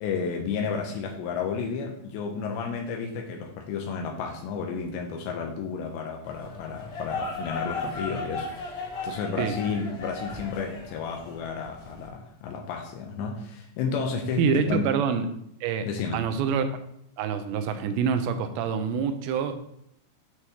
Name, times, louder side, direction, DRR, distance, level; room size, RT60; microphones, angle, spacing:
voice 1, 0.0-8.5 9.0-12.2 12.4-13.4 13.8-14.9 15.8-16.2, left 5 dB, 80° left, 1 dB, 2.9 m, -31 dB
sound 1, 6.3-12.1, left 3 dB, 65° left, 1.7 m, -36 dB
voice 2, 14.4-15.3 15.6-15.9 16.1-16.7 17.2-19.5, right 6 dB, 85° right, 9 dB, 2.9 m, -26 dB
9.5 x 6.3 x 2.9 m, 0.75 s
omnidirectional pair, 5.0 m